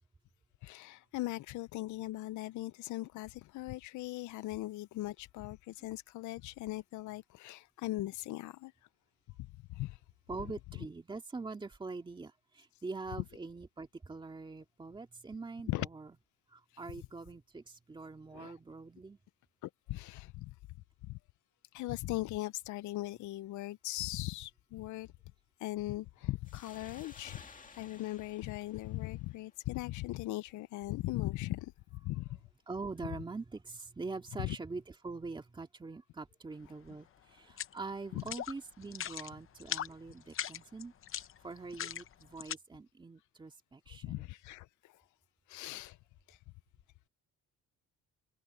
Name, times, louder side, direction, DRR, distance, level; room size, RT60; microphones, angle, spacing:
voice 1, 0.6-8.7 9.4-10.0 12.7-12.8 15.7-15.9 18.3-18.5 19.6-20.6 21.0-21.2 21.7-25.1 25.6-27.4 27.7-32.3 34.4-34.6 38.2-38.3 43.9-45.0 45.5-46.0 46.3-46.4, left 17 dB, 70° left, 0.5 m, -39 dB
voice 2, 10.3-16.1 16.5-19.2 32.7-40.9 41.4-44.3, right 3 dB, 15° right, 2.1 m, -44 dB
sound 1, 26.4-29.8, left 5 dB, 25° left, 2.1 m, -56 dB
sound 2, 37.5-37.8 38.2-38.5 38.8-39.3 39.6-39.9 40.3-42.5, left 10 dB, 40° left, 0.8 m, -39 dB
cardioid pair, 160°, 31 cm